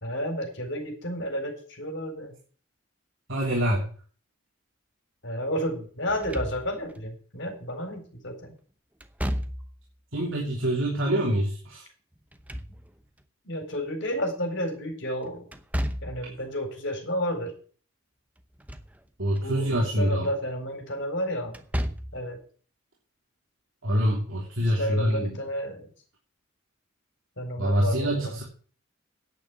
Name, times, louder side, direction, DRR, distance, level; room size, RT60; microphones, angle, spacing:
voice 1, 0.0-2.3 5.2-8.5 13.4-15.5 16.0-17.5 19.4-21.6 22.1-22.4 24.6-25.9 27.4-28.4, equal, 55° left, 5 dB, 4.3 m, -31 dB
voice 2, 3.3-3.9 10.1-11.8 19.2-20.3 23.8-25.4 27.6-28.4, equal, 65° right, -3 dB, 3.3 m, -25 dB
Slam / Thump thud, 6.1-7.0 9.0-9.9 12.1-13.2 15.5-16.3 18.4-19.0 19.4-19.5 21.5-22.3, equal, 5° right, 0.8 m, -33 dB
10.0 x 8.8 x 7.8 m, 0.42 s
head